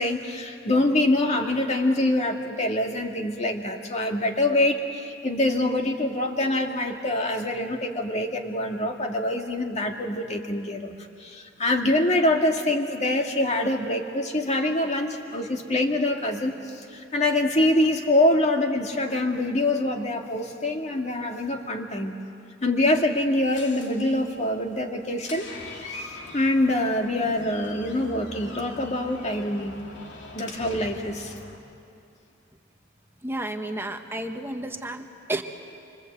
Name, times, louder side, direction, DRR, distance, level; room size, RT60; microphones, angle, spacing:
voice 1, 0.0-22.1 22.6-25.5 26.3-29.8 30.3-31.3, left 1 dB, 35° left, 3 dB, 2.0 m, -25 dB
Door, 22.9-31.6, left 2 dB, 60° left, 2.8 m, -43 dB
voice 2, 33.2-35.4, right 1 dB, 10° right, 5 dB, 1.2 m, -31 dB
27.0 x 25.0 x 8.0 m, 2.5 s
head